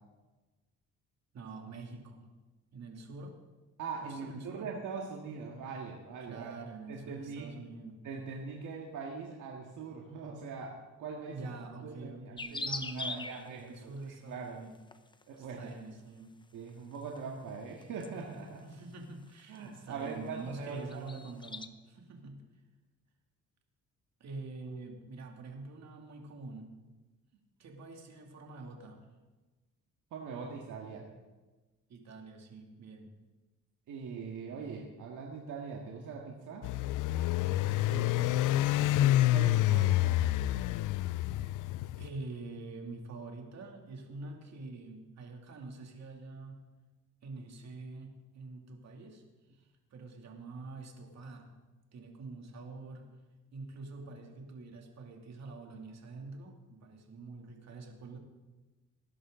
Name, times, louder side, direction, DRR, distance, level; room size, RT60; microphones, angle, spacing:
voice 1, 1.3-2.3 2.7-3.4 4.0-4.7 6.3-8.0 11.3-14.7 15.4-16.3 18.6-22.4 24.2-26.8 27.6-29.1 31.9-33.1 37.8-38.4 42.0-46.6 47.2-49.2 49.5-51.5 51.9-53.1 53.5-58.2, right 3 dB, 60° right, 2 dB, 2.6 m, -45 dB
voice 2, 3.8-6.6 6.9-7.5 8.0-11.4 11.8-14.6 15.3-15.7 16.5-18.7 19.5-21.0 30.1-31.1 33.9-36.7 38.9-40.2, right 5 dB, 75° right, -1 dB, 1.9 m, -42 dB
sound 1, 12.4-13.5 14.9-15.2 16.7-17.2 17.8-18.1 18.7-18.8 19.6-19.7 19.9-20.1 20.4-21.7, left 3 dB, 15° left, 0.7 m, -39 dB
sound 2, 36.6-42.1, left 15 dB, 80° left, 0.5 m, -28 dB
19.5 x 11.0 x 3.9 m, 1.2 s
cardioid pair, 100°, 31 cm